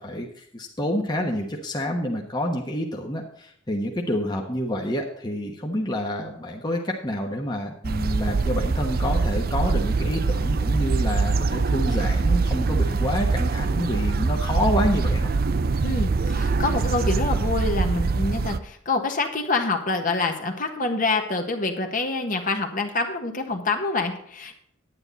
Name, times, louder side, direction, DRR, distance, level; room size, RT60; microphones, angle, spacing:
voice 1, 0.0-15.3, left 1 dB, 20° left, 0 dB, 1.2 m, -28 dB
sound 1, 7.8-18.6, right 4 dB, 50° right, 0.5 m, -23 dB
voice 2, 15.8-24.5, left 3 dB, 45° left, 4 dB, 1.4 m, -26 dB
9.8 x 9.7 x 4.0 m, 0.70 s
head